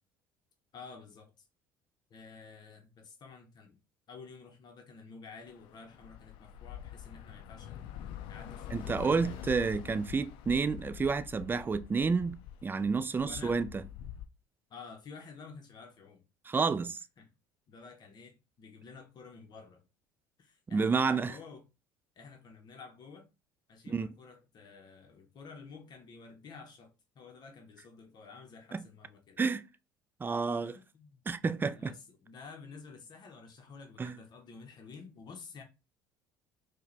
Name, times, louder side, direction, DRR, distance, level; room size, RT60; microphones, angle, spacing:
voice 1, 0.7-1.5 2.1-3.8 4.1-7.9 8.3-9.5 13.2-13.6 14.7-16.2 17.2-17.3 17.7-19.8 20.4-21.6 22.2-23.3 23.7-29.4 30.6-31.2 31.7-35.6, left 4 dB, 45° left, 0.8 m, -51 dB
Bus / Traffic noise roadway noise, 5.5-14.3, left 10 dB, 60° left, 0.4 m, -45 dB
voice 2, 8.7-13.7 16.5-17.0 20.7-21.3 23.9-24.1 28.7-28.8 29.4-29.6 30.2-30.8 31.3-31.9 34.0-34.1, right 4 dB, 20° right, 0.4 m, -30 dB
4.5 x 2.2 x 3.1 m
hypercardioid pair, 65°, 10 cm